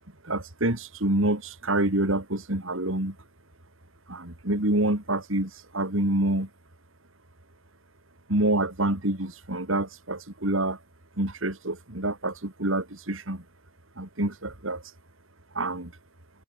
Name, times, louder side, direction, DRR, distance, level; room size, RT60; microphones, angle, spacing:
voice 1, 0.2-3.2 4.1-6.5 8.3-10.8 11.2-13.4 14.0-14.8 15.5-15.9, right 1 dB, 75° right, 3.8 m, -27 dB
head